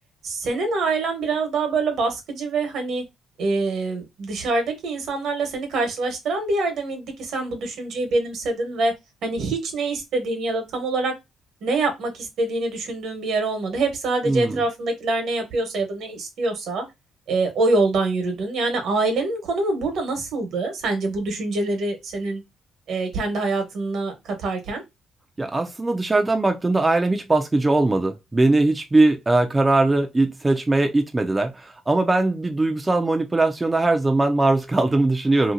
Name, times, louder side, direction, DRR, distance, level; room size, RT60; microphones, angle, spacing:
voice 1, 0.2-3.0 3.4-8.9 9.2-11.1 11.6-16.8 17.3-22.4 22.9-24.8, right 3 dB, 75° right, 1.1 m, -25 dB
voice 2, 14.2-14.6 25.4-35.5, right 2 dB, 20° right, 0.5 m, -20 dB
2.8 x 2.8 x 2.6 m
cardioid pair, 90°, 0 cm